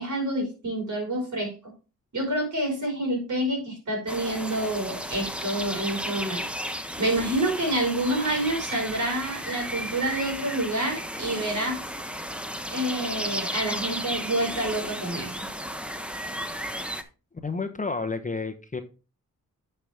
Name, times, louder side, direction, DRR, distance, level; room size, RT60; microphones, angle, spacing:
voice 1, 0.0-1.5 2.1-6.4 7.0-11.8 12.7-15.3, right 1 dB, 60° right, 0 dB, 5.0 m, -28 dB
sound 1, 4.1-17.0, equal, 5° right, 1.0 m, -34 dB
voice 2, 17.4-18.8, left 4 dB, 25° left, 8 dB, 0.9 m, -30 dB
10.0 x 5.7 x 3.5 m, 0.33 s
cardioid pair, 70°, 33 cm